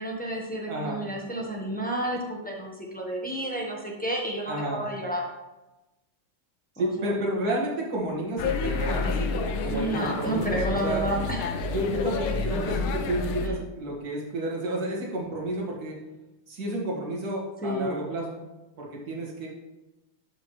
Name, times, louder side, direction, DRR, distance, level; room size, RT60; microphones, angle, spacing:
voice 1, 0.0-5.2 6.8-7.1 9.7-11.6 17.6-18.0, right 1 dB, 10° left, -2 dB, 0.4 m, -31 dB
voice 2, 0.7-1.0 4.5-4.9 6.8-11.0 11.6-16.0 16.5-18.4 18.8-19.5, right 1 dB, 50° right, -3 dB, 2.1 m, -31 dB
sound 1, 8.4-13.5, left 4 dB, 80° left, 1.6 m, -29 dB
11.5 x 5.2 x 3.1 m, 1.0 s
omnidirectional pair, 2.3 m